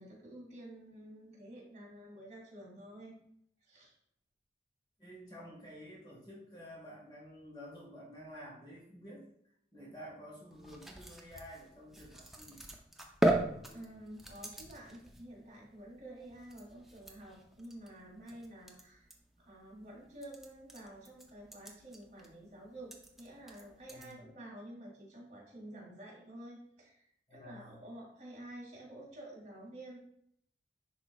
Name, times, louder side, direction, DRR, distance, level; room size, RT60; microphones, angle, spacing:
voice 1, 0.0-3.2 3.6-4.0 13.7-19.1 19.4-22.9 23.2-30.0, right 1 dB, 40° right, -5 dB, 2.6 m, -50 dB
voice 2, 5.0-9.3 9.7-12.6 23.9-24.3 27.3-27.8, equal, 25° left, -4 dB, 1.5 m, -50 dB
sound 1, 10.5-24.1, right 1 dB, ahead, 0.6 m, -40 dB
10.5 x 4.2 x 2.3 m, 0.71 s
head